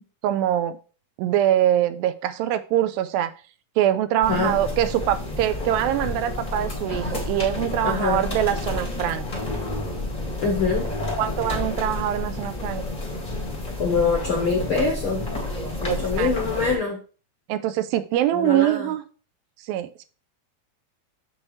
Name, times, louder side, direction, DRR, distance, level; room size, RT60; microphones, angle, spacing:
voice 1, 0.2-0.8 1.2-3.3 3.8-9.2 11.2-12.8 15.8-16.3 17.5-19.0 19.7-20.0, right 12 dB, 85° right, 12 dB, 2.4 m, -23 dB
sound 1, 4.2-16.7, left 2 dB, 25° left, 0.8 m, -30 dB
voice 2, 10.4-10.9 13.8-15.2 15.8-17.0 18.3-18.9, left 4 dB, 65° left, 0 dB, 1.3 m, -24 dB
7.1 x 6.5 x 3.1 m, 0.37 s
omnidirectional pair, 4.0 m